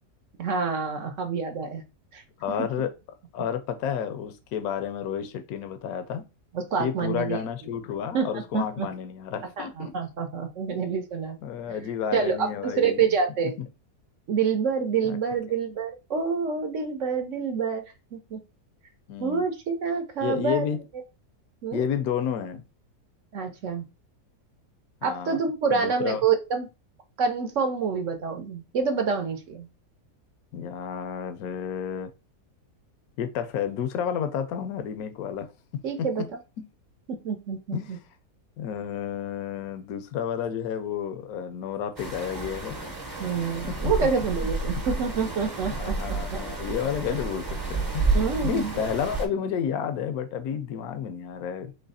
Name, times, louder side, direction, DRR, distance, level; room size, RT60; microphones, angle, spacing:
voice 1, 0.4-1.8 2.1-2.2 2.6-2.7 3.4-3.5 6.5-7.4 8.1-8.9 9.6-11.4 12.1-13.5 14.3-17.8 18.1-18.4 19.2-20.7 21.6-21.8 23.3-23.8 25.0-26.7 27.2-29.7 35.8-36.2 37.1-38.0 43.2-46.0 46.3-46.4 48.1-48.7, right 5 dB, 60° right, 0.9 m, -27 dB
voice 2, 2.4-2.9 3.3-6.3 6.8-9.9 11.4-13.0 15.0-15.2 19.1-19.4 20.2-20.8 21.7-22.6 25.0-25.4 25.7-26.2 30.5-32.1 33.2-35.5 36.6-36.7 37.7-37.9 38.6-42.8 43.7-44.1 45.7-48.1 48.4-51.7, left 8 dB, 65° left, 1.1 m, -31 dB
sound 1, 42.0-49.3, right 3 dB, 15° right, 0.8 m, -30 dB
3.9 x 3.2 x 4.1 m
omnidirectional pair, 1.8 m